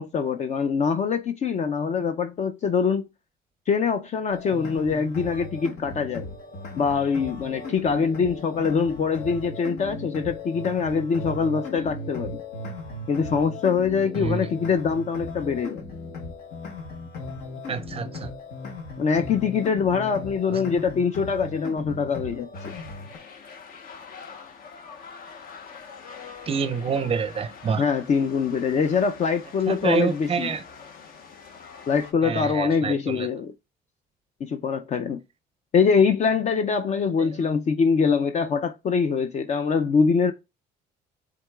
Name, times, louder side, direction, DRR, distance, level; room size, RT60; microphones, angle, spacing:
voice 1, 0.0-3.1 3.7-6.3 6.7-12.4 13.1-15.8 19.0-22.7 27.8-30.5 31.9-33.5 34.4-35.2 35.7-40.3, left 5 dB, 45° left, 0.5 m, -24 dB
sound 1, 4.3-23.2, left 2 dB, 75° left, 1.3 m, -37 dB
voice 2, 14.2-14.5 17.7-18.3 20.5-20.6 26.5-27.8 29.7-30.6 32.2-33.3 37.2-37.5, right 6 dB, 35° right, 0.5 m, -27 dB
sound 2, 22.5-32.1, left 6 dB, 60° left, 1.0 m, -44 dB
11.0 x 3.8 x 2.3 m
cardioid pair, 110°, 17 cm